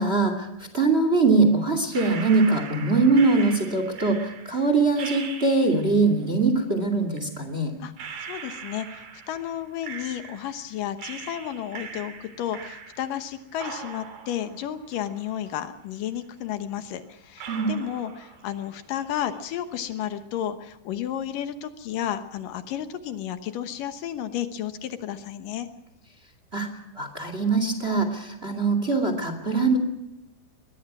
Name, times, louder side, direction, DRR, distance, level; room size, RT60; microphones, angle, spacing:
voice 1, 0.0-7.7 17.5-17.7 26.5-26.7 27.0-29.8, right 3 dB, 20° right, 7 dB, 2.1 m, -22 dB
sound 1, 1.9-6.1 7.1-7.2 8.0-10.7 11.0-13.3 13.6-15.6 16.0-16.1 16.7-16.8 17.4-18.7 19.0-19.5, right 6 dB, 90° right, 4.8 m, -40 dB
voice 2, 8.3-25.7, left 10 dB, 75° left, 10 dB, 2.7 m, -32 dB
22.0 x 19.5 x 6.1 m, 0.92 s
omnidirectional pair, 4.1 m